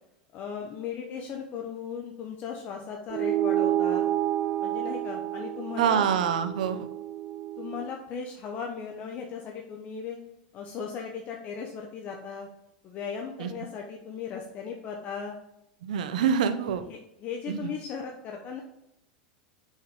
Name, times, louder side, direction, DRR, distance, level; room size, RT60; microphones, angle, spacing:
voice 1, 0.3-4.1 4.6-6.1 7.6-10.2 10.5-12.5 12.8-15.4 16.9-18.6, left 6 dB, 40° left, 2 dB, 0.9 m, -37 dB
sound 1, 3.1-7.9, right 12 dB, 40° right, 0.4 m, -29 dB
voice 2, 5.8-6.9 13.4-13.5 15.8-16.8 17.5-17.7, right 7 dB, 80° right, 10 dB, 0.7 m, -26 dB
7.1 x 5.5 x 3.7 m, 0.86 s
supercardioid pair, 130°, 4 cm